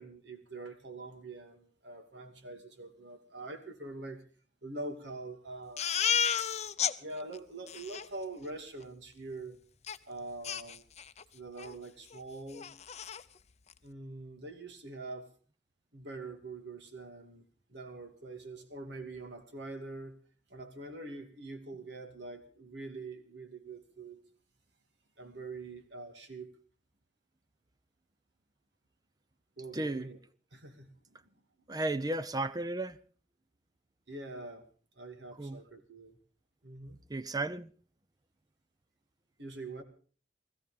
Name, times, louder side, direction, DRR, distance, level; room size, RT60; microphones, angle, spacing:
voice 1, 0.0-4.2 4.6-6.1 7.0-9.6 10.1-10.8 11.3-12.7 13.8-15.3 15.9-17.4 17.7-20.2 20.5-24.2 25.2-26.5 29.6-30.2 30.5-30.9 34.1-34.7 35.0-36.2 36.6-37.0 39.4-39.8, right 2 dB, 70° right, 2.5 m, -44 dB
Crying sobbing, 5.8-6.9 7.3-7.4 7.7-8.1 9.9-10.0 10.4-11.2 11.6-11.8 12.1-12.2 12.5-13.2, left 8 dB, 40° left, 0.7 m, -32 dB
voice 2, 29.7-30.1 31.7-33.0 35.4-35.6 37.1-37.7, right 2 dB, 20° right, 0.7 m, -34 dB
17.0 x 15.0 x 5.3 m
head